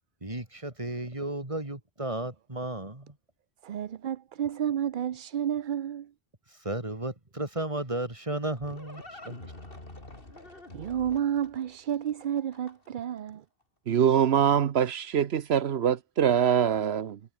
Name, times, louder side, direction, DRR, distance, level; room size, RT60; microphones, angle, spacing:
voice 1, 0.2-3.2 6.5-9.5, right 1 dB, 30° right, 3.4 m, -34 dB
voice 2, 3.6-6.1 10.7-13.4, right 9 dB, 55° right, 0.7 m, -31 dB
Livestock farm animals working animals, 8.3-13.0, left 2 dB, 60° left, 4.7 m, -47 dB
voice 3, 13.9-17.2, right 8 dB, 80° right, 1.1 m, -24 dB
omnidirectional pair, 1.1 m